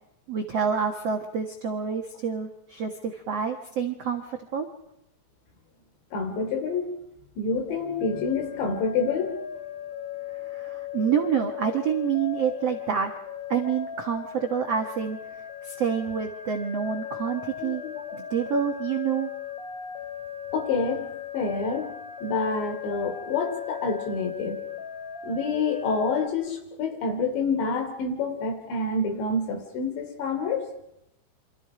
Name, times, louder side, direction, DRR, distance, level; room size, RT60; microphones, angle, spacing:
voice 1, 0.3-4.7 10.4-13.1 13.5-15.2 15.6-17.8 18.3-19.3, right 7 dB, 65° right, 4 dB, 1.5 m, -27 dB
voice 2, 6.1-6.9 7.4-9.4 17.6-18.2 20.5-21.1 21.3-21.9 22.2-24.6 25.2-30.7, left 4 dB, 80° left, 5 dB, 5.4 m, -28 dB
sound 1, 7.7-26.3, left 9 dB, 35° left, 2.2 m, -38 dB
28.0 x 25.5 x 5.0 m, 0.81 s
omnidirectional pair, 5.1 m